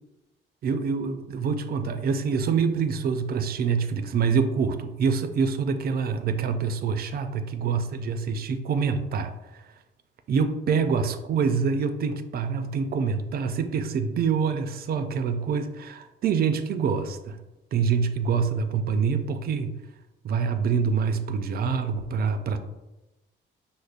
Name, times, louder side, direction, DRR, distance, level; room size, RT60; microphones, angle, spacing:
voice 1, 0.6-9.6 10.3-17.4 17.7-19.8 20.2-22.6, right 6 dB, 50° right, 9 dB, 0.4 m, -26 dB
5.1 x 2.0 x 2.4 m, 1.0 s
cardioid pair, 90°, 20 cm